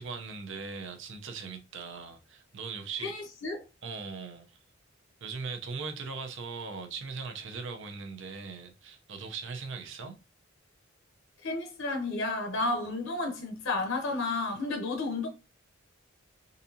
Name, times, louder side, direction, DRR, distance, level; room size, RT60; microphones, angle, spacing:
voice 1, 0.0-3.1 3.8-4.6 5.2-10.1, right 5 dB, 65° right, 0.7 m, -39 dB
voice 2, 3.0-3.6 11.4-15.3, left 2 dB, 75° left, 0.7 m, -32 dB
3.9 x 2.7 x 2.7 m
head